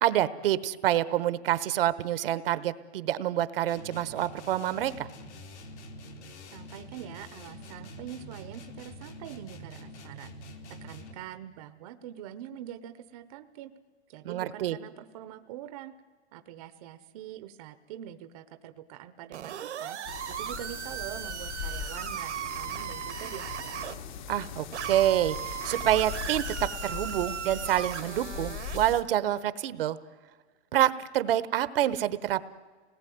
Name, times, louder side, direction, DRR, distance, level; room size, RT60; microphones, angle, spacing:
voice 1, 0.0-5.1 14.2-14.8 24.3-30.0 30.7-32.4, right 12 dB, 55° right, 15 dB, 1.1 m, -27 dB
sound 1, 3.7-11.3, equal, 80° left, 3.9 m, -46 dB
voice 2, 6.5-10.3 10.8-13.7 14.1-15.9 16.3-20.0 20.4-23.8, right 11 dB, 35° right, 10 dB, 0.9 m, -44 dB
sound 2, 19.3-23.9 24.7-28.9, right 10 dB, 90° right, 2.0 m, -37 dB
sound 3, 20.1-29.0, left 8 dB, 45° left, 1.3 m, -40 dB
27.0 x 19.5 x 9.3 m, 1.5 s
supercardioid pair, 175°, 34 cm